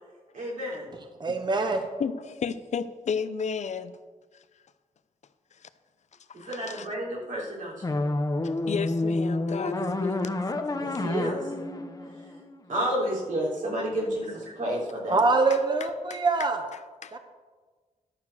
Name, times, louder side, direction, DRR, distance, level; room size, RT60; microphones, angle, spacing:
voice 1, 0.3-0.9 6.3-8.0 10.8-11.5 12.7-15.2, equal, 90° right, -5 dB, 3.3 m, -31 dB
voice 2, 1.2-1.8 15.1-16.6 17.1-17.2, right 3 dB, 35° right, 6 dB, 0.8 m, -24 dB
voice 3, 2.0-4.0 5.6-5.7 6.3-6.9 8.7-10.4 15.5-17.2, left 6 dB, 65° left, 13 dB, 0.5 m, -34 dB
sound 1, 7.8-13.0, left 2 dB, 30° left, 0.8 m, -29 dB
11.5 x 4.6 x 7.1 m, 1.4 s
wide cardioid pair, 120°, 13 cm